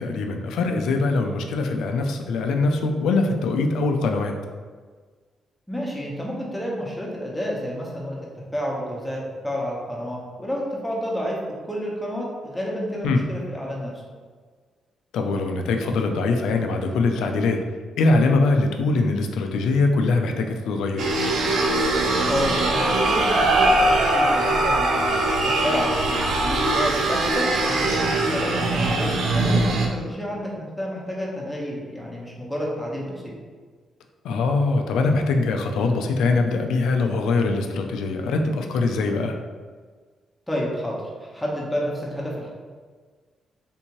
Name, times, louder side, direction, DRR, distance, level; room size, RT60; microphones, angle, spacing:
voice 1, 0.0-4.3 13.0-13.2 15.1-17.6 18.0-21.0 34.2-39.4, left 3 dB, 90° left, 4 dB, 0.4 m, -22 dB
voice 2, 5.7-8.2 8.5-9.2 9.4-11.4 11.6-13.9 22.2-25.2 25.4-33.3 40.5-42.5, equal, 10° left, -3 dB, 1.0 m, -30 dB
sound 1, 21.0-29.9, right 2 dB, 80° right, 0.5 m, -21 dB
3.5 x 2.7 x 3.0 m, 1.5 s
cardioid pair, 85°, 0 cm